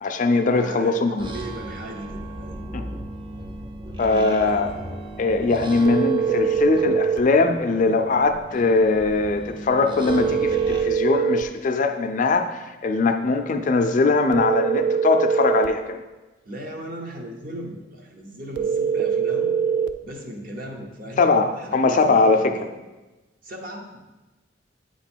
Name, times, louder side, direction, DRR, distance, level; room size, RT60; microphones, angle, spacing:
voice 1, 0.0-1.3 2.7-2.8 4.0-4.7 5.2-16.0 21.2-22.6, left 3 dB, 45° left, 6 dB, 0.4 m, -21 dB
voice 2, 0.5-2.6 3.9-4.8 16.4-19.5 20.0-22.7 23.4-24.0, equal, 50° right, 2 dB, 0.8 m, -37 dB
sound 1, 1.2-10.8, right 1 dB, 25° right, 0.5 m, -37 dB
sound 2, 5.9-7.3 10.1-11.5 14.3-15.7 18.6-20.0, right 6 dB, 85° right, 0.3 m, -22 dB
8.4 x 3.0 x 4.4 m, 1.1 s
head